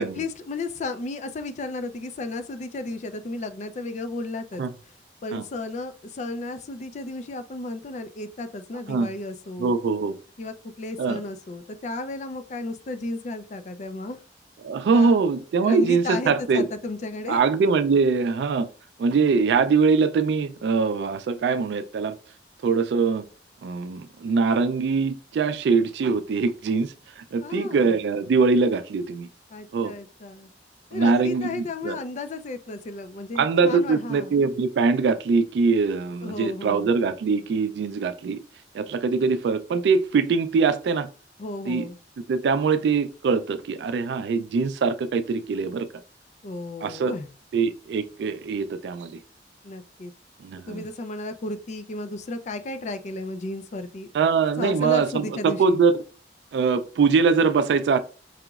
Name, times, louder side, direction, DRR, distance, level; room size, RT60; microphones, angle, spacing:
voice 1, 0.0-4.6 5.2-9.7 10.4-14.2 14.9-15.2 15.6-17.4 27.4-27.9 29.5-30.5 30.9-34.3 36.2-36.9 41.4-42.0 46.4-47.3 49.6-50.1 50.7-54.1 54.6-55.8, left 2 dB, 40° left, 0.4 m, -34 dB
voice 2, 9.6-10.2 11.0-11.2 14.6-16.7 17.3-18.7 19.0-22.2 22.6-23.2 23.6-29.3 29.7-29.9 30.9-32.0 33.4-38.4 38.7-41.1 41.7-41.9 42.3-45.9 46.8-47.1 47.5-49.2 50.4-50.8 54.1-55.9 56.5-58.0, right 5 dB, 70° right, 0.3 m, -22 dB
4.8 x 2.9 x 2.3 m
head